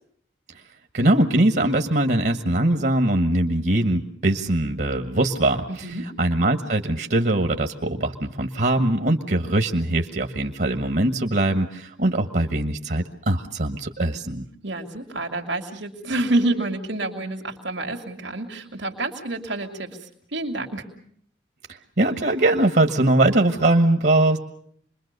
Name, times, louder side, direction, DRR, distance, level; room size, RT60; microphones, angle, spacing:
voice 1, 0.9-5.9 6.2-14.5 21.7-24.4, right 1 dB, 60° right, 6 dB, 1.4 m, -21 dB
voice 2, 5.7-6.1 14.6-20.0 20.3-20.8, right 2 dB, 85° right, 2 dB, 2.6 m, -28 dB
27.0 x 22.0 x 6.7 m, 0.64 s
head